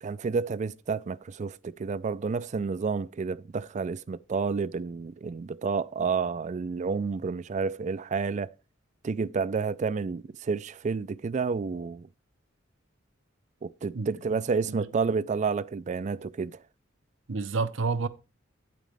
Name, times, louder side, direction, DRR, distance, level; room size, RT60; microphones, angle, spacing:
voice 1, 0.0-8.5 9.0-12.1 13.6-16.6, right 5 dB, 40° right, 0.3 m, -30 dB
voice 2, 13.9-14.4 14.7-14.9 17.3-18.1, right 4 dB, 75° right, 0.7 m, -30 dB
9.2 x 8.3 x 3.4 m
head